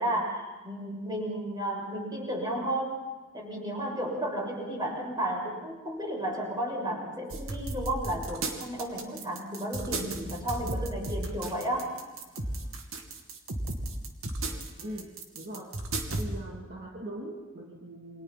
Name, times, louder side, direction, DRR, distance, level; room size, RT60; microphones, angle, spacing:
voice 1, 0.0-3.0 3.3-11.9, right 1 dB, 20° right, -1 dB, 7.1 m, -33 dB
sound 1, 7.3-16.2, right 2 dB, 90° right, 2.7 m, -34 dB
voice 2, 14.8-15.8 16.2-18.2, right 1 dB, 50° right, -3 dB, 2.9 m, -41 dB
28.5 x 25.5 x 4.3 m, 1.2 s
head